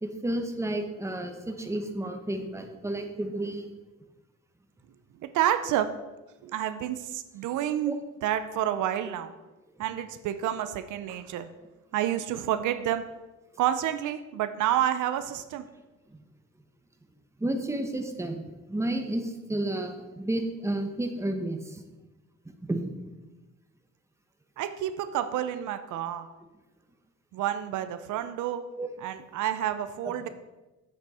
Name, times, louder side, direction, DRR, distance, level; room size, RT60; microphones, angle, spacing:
voice 1, 0.0-3.7 7.9-8.0 16.1-16.2 17.4-21.8 22.4-22.8 28.8-28.9 30.0-30.1, right 1 dB, 10° right, 5 dB, 1.0 m, -31 dB
voice 2, 5.2-5.9 6.4-7.9 8.2-9.3 9.8-11.5 11.9-13.0 13.6-15.7 24.6-26.3 27.3-28.6 29.0-30.3, right 11 dB, 80° right, 11 dB, 0.6 m, -29 dB
7.6 x 6.1 x 4.2 m, 1.1 s
cardioid pair, 90°, 30 cm